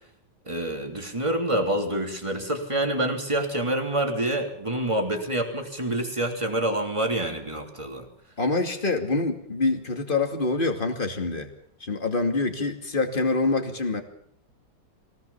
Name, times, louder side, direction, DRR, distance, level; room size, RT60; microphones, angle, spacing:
voice 1, 0.5-8.1, right 1 dB, 15° right, 3 dB, 3.3 m, -27 dB
voice 2, 8.4-11.5 11.8-14.0, left 3 dB, 25° left, 4 dB, 2.6 m, -25 dB
24.0 x 18.0 x 7.2 m, 0.64 s
omnidirectional pair, 2.1 m